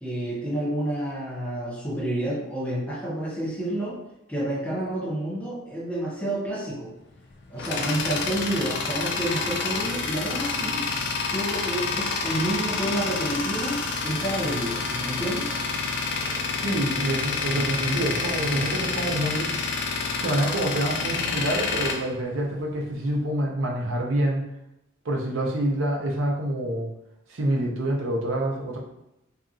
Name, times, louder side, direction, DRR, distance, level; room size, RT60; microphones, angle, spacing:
voice 1, 0.0-4.0 4.3-6.9 7.5-10.8 11.2-15.5, right 1 dB, 5° left, -5 dB, 0.7 m, -29 dB
Tools, 7.1-22.9, left 4 dB, 55° left, 0.3 m, -28 dB
voice 2, 16.6-19.5 20.2-24.4 25.0-26.9 27.3-28.8, right 1 dB, 75° right, 0 dB, 0.6 m, -26 dB
2.8 x 2.5 x 2.4 m, 0.86 s
head